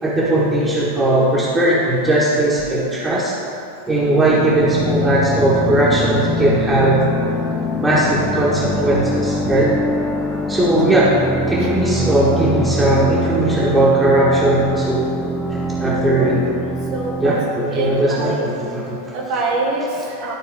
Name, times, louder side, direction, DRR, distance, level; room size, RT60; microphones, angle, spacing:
voice 1, 0.0-3.3 3.9-7.1 7.8-9.7 10.5-11.2 11.5-15.1 15.5-16.5 17.2-19.0, right 1 dB, 10° right, -10 dB, 1.4 m, -18 dB
sound 1, 4.3-17.4, left 1 dB, 5° left, 0.6 m, -23 dB
voice 2, 16.6-17.4 17.7-18.5 19.1-20.3, right 3 dB, 45° right, -2 dB, 0.9 m, -25 dB
12.5 x 4.3 x 3.5 m, 2.6 s
figure-of-eight pair, 90°, 0 cm